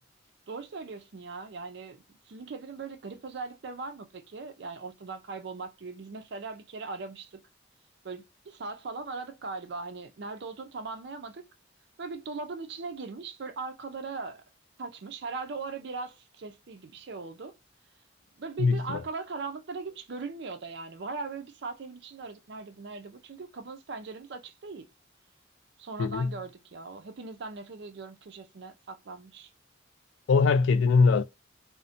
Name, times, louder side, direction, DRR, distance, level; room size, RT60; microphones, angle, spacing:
voice 1, 0.5-7.4 8.0-11.4 12.0-14.4 14.8-17.5 18.4-24.9 25.8-29.5, right 4 dB, 60° right, 0.5 m, -39 dB
voice 2, 18.6-19.0 26.0-26.3 30.3-31.2, left 4 dB, 75° left, 0.3 m, -22 dB
2.6 x 2.1 x 2.6 m
head